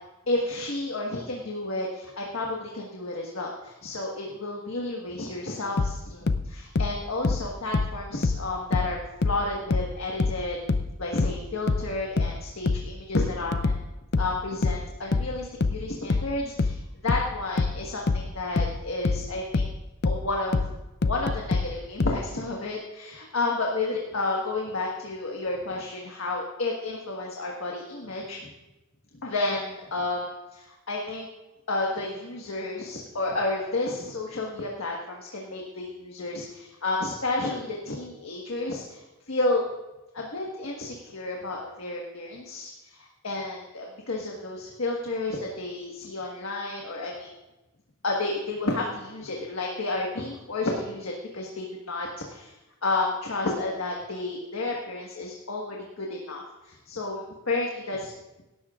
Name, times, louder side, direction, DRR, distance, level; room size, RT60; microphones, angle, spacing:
voice 1, 0.3-9.0 9.2-10.6 11.0-13.8 14.2-16.8 17.0-19.7 20.0-20.7 21.0-28.5 29.2-31.3 31.7-39.6 40.1-47.3 48.0-52.5 52.8-58.1, left 2 dB, 75° left, -1 dB, 1.5 m, -31 dB
sound 1, 5.8-9.0 9.2-22.2, left 3 dB, 50° left, 0.5 m, -26 dB
17.5 x 12.5 x 2.5 m, 1.0 s
head